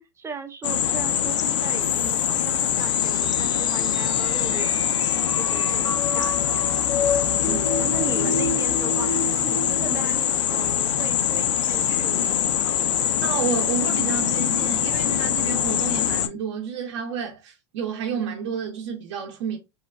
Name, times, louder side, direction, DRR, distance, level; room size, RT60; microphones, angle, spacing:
voice 1, 0.0-4.8 5.2-6.8 7.4-12.9, right 5 dB, 20° right, 0.5 m, -38 dB
sound 1, 0.6-16.3, left 9 dB, 80° left, 0.4 m, -23 dB
sound 2, 1.8-10.0, left 3 dB, 25° left, 0.5 m, -31 dB
sound 3, 5.6-11.4, left 6 dB, 65° left, 0.8 m, -40 dB
voice 2, 7.1-7.6 13.2-19.6, right 7 dB, 70° right, 0.5 m, -30 dB
3.0 x 2.2 x 2.2 m
hypercardioid pair, 100°, 15 cm